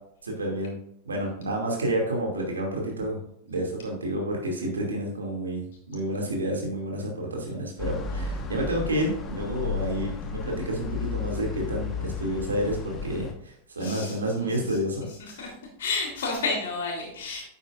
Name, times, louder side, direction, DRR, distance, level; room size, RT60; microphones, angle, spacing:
voice 1, 0.2-0.8 1.0-3.2 3.5-15.1, right 1 dB, 75° right, 0 dB, 2.6 m, -29 dB
sound 1, 7.8-13.3, left 5 dB, 25° left, 1.3 m, -33 dB
voice 2, 13.8-14.8 15.1-15.5 15.8-17.4, left 3 dB, 60° left, -1 dB, 3.5 m, -31 dB
9.9 x 9.2 x 2.6 m, 0.73 s
figure-of-eight pair, 90°, 0 cm